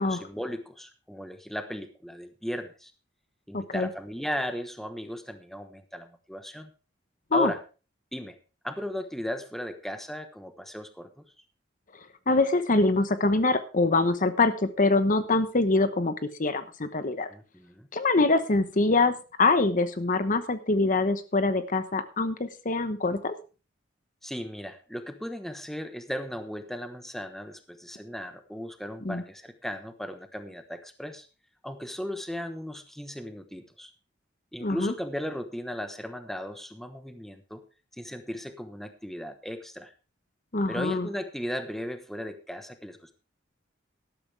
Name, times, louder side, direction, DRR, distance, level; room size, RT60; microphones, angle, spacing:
voice 1, 0.0-2.9 3.5-6.7 7.3-7.6 8.1-8.4 8.6-11.2 17.3-17.9 24.2-31.3 31.6-33.9 34.5-37.6 38.0-39.9 40.7-43.1, equal, ahead, 8 dB, 1.1 m, -36 dB
voice 2, 3.5-3.9 7.3-7.5 12.3-16.1 16.4-17.3 17.9-23.3 29.0-29.2 34.6-34.9 40.5-41.1, left 3 dB, 45° left, 11 dB, 1.0 m, -24 dB
13.0 x 12.5 x 3.3 m, 0.33 s
head